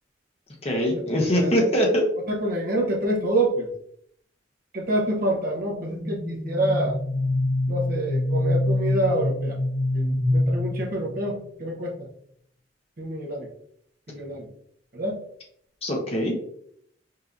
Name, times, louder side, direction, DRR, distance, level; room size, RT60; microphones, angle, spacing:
voice 1, 0.6-2.0 15.8-16.3, equal, 35° left, -1 dB, 1.0 m, -22 dB
voice 2, 1.3-1.9 2.3-3.7 4.7-7.0 7.7-9.6 9.9-11.9 13.0-13.5 14.1-14.5 14.9-15.2, right 1 dB, 50° right, -1 dB, 1.0 m, -27 dB
sound 1, 5.7-11.3, left 1 dB, 80° left, 0.7 m, -25 dB
5.6 x 2.8 x 2.5 m, 0.68 s
head